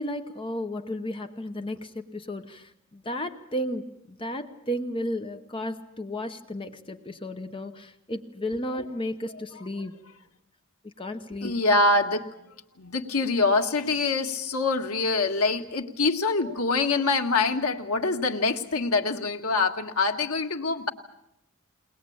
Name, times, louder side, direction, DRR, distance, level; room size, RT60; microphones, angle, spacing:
voice 1, 0.0-10.0 10.8-11.5, left 1 dB, 25° left, 7 dB, 0.9 m, -33 dB
voice 2, 11.4-12.3 12.8-20.9, left 3 dB, 90° left, 5 dB, 1.7 m, -25 dB
22.5 x 19.5 x 8.6 m, 0.83 s
head